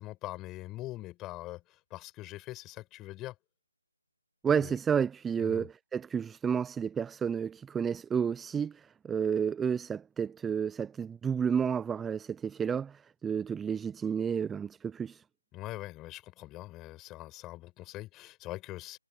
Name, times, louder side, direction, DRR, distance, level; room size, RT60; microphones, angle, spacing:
voice 1, 0.0-3.3 4.6-4.7 5.4-5.7 15.5-19.0, left 17 dB, 10° left, 6.9 m, -43 dB
voice 2, 4.4-15.2, right 7 dB, 5° right, 0.4 m, -31 dB
figure-of-eight pair, 160°, 0 cm